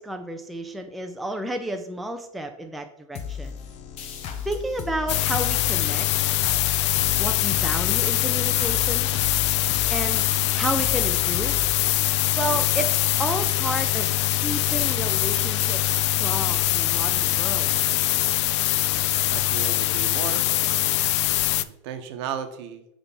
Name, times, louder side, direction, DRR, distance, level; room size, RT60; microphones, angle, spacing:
voice 1, 0.0-3.5 4.5-6.1 7.2-9.1 9.9-10.2 10.6-11.6 12.3-14.1 14.4-17.9, right 1 dB, ahead, 5 dB, 0.4 m, -31 dB
sound 1, 3.1-12.4, left 7 dB, 40° left, 1.0 m, -35 dB
sound 2, 5.1-21.6, left 14 dB, 60° left, 0.4 m, -23 dB
voice 2, 19.3-20.4 21.6-22.9, right 7 dB, 55° right, 8 dB, 1.0 m, -34 dB
5.7 x 3.5 x 5.6 m, 0.80 s
hypercardioid pair, 110°, 16 cm